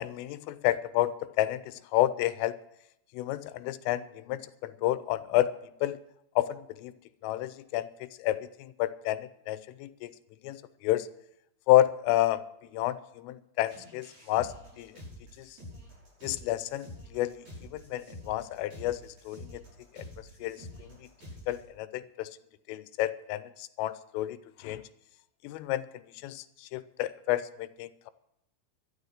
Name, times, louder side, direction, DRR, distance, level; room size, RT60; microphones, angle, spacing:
voice 1, 0.0-2.6 3.1-5.5 5.8-6.0 6.4-6.9 7.2-10.1 10.4-11.1 11.7-12.4 12.7-14.9 15.4-15.5 16.2-17.3 17.7-19.6 19.9-20.1 20.4-20.9 21.5-22.3 22.7-24.8 25.4-25.9 26.2-28.1, left 14 dB, 90° left, 14 dB, 3.2 m, -30 dB
sound 1, 13.6-21.6, left 1 dB, 35° right, 6.9 m, -48 dB
12.5 x 12.0 x 6.5 m, 0.82 s
omnidirectional pair, 5.6 m